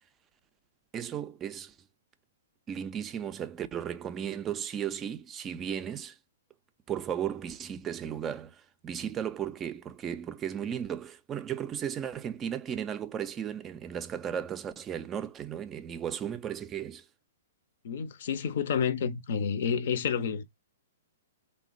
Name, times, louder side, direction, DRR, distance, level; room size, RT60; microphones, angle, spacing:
voice 1, 0.9-1.8 2.7-6.2 6.9-17.1, right 9 dB, 20° right, 0.3 m, -35 dB
voice 2, 17.8-20.4, left 7 dB, 60° left, 0.5 m, -29 dB
3.2 x 2.1 x 2.4 m
hypercardioid pair, 120°, 0 cm